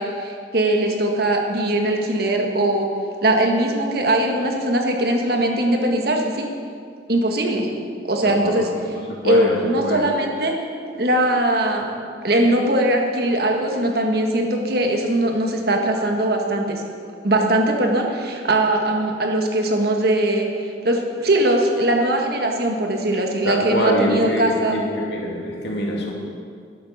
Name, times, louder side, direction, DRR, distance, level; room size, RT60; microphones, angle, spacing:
voice 1, 0.0-2.9 3.2-6.5 7.1-7.7 8.1-8.7 9.2-10.6 11.0-11.9 12.2-16.8 17.2-24.8, right 1 dB, 60° right, 2 dB, 1.7 m, -20 dB
voice 2, 8.2-10.1 23.4-26.1, equal, 65° left, -2 dB, 2.9 m, -24 dB
12.5 x 11.0 x 7.2 m, 2.3 s
head